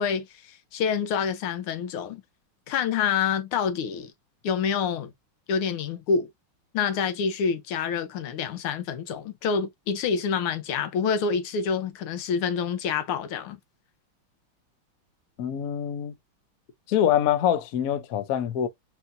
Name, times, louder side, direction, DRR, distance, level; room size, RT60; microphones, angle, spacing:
voice 1, 0.0-2.2 2.7-4.1 4.4-5.1 5.5-6.3 6.7-13.6, left 6 dB, 85° left, 1.8 m, -27 dB
voice 2, 15.4-16.1 16.9-18.7, left 10 dB, 70° left, 0.8 m, -24 dB
4.3 x 3.9 x 2.6 m
omnidirectional pair, 2.3 m